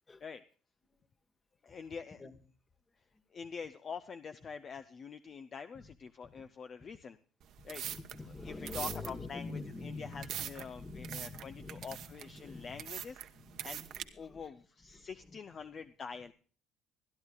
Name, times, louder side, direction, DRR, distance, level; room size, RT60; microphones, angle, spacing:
voice 1, 1.6-2.2 3.3-7.2 7.6-7.8 8.4-13.2 13.6-13.8 14.1-16.3, left 6 dB, 40° left, 11 dB, 0.5 m, -45 dB
sound 1, 7.4-14.0, right 11 dB, 65° right, 1.0 m, -44 dB
voice 2, 7.8-12.1 12.3-12.8 13.3-14.4 14.9-15.1, left 3 dB, 25° left, 10 dB, 1.4 m, -46 dB
25.0 x 11.0 x 2.3 m, 0.40 s
supercardioid pair, 80°, 0 cm